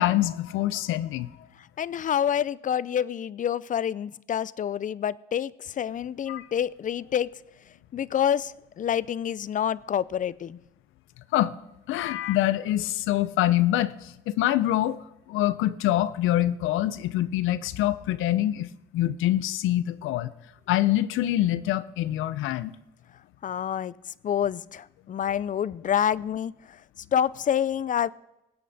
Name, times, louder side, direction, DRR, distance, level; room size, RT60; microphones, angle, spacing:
voice 1, 0.0-1.3 6.3-6.5 11.3-11.5 11.9-15.0 15.3-20.3 20.7-22.7, left 14 dB, 90° left, 16 dB, 0.6 m, -25 dB
voice 2, 1.8-7.3 7.9-10.6 23.4-23.9 24.2-26.8 27.1-28.1, left 9 dB, 40° left, 21 dB, 0.4 m, -27 dB
19.5 x 8.4 x 4.1 m, 0.93 s
cardioid pair, 90°, 20 cm